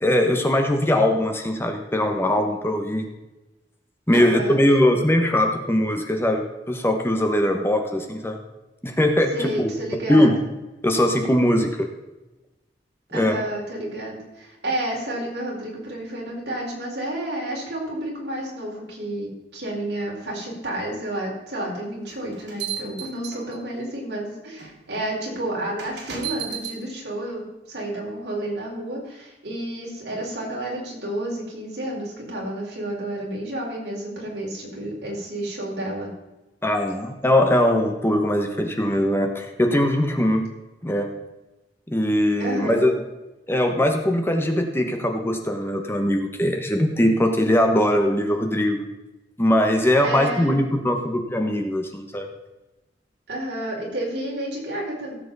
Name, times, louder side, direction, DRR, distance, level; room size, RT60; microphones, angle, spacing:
voice 1, 0.0-3.1 4.1-8.4 8.8-9.7 10.1-10.3 10.8-11.7 13.1-13.4 36.6-40.5 40.8-41.1 41.9-42.9 43.5-48.8 49.4-52.3, left 1 dB, 15° left, 4 dB, 1.1 m, -21 dB
voice 2, 4.1-4.6 9.3-10.4 13.1-36.1 42.4-43.0 50.0-50.6 53.3-55.2, right 1 dB, 70° right, -3 dB, 4.5 m, -30 dB
sound 1, 22.0-23.8 24.6-24.7 25.8-26.8, right 8 dB, 90° right, 2.6 m, -33 dB
16.5 x 7.7 x 4.1 m, 1.0 s
head